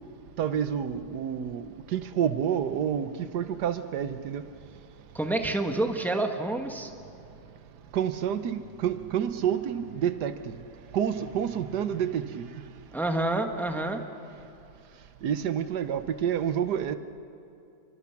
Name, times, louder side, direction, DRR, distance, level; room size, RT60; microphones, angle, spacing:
voice 1, 0.4-4.4 7.9-10.5 10.9-12.5 15.2-17.0, right 9 dB, 85° right, 11 dB, 1.5 m, -29 dB
voice 2, 5.1-6.9 12.9-14.0, right 2 dB, ahead, 5 dB, 1.2 m, -28 dB
29.0 x 24.0 x 5.9 m, 2.7 s
omnidirectional pair, 1.7 m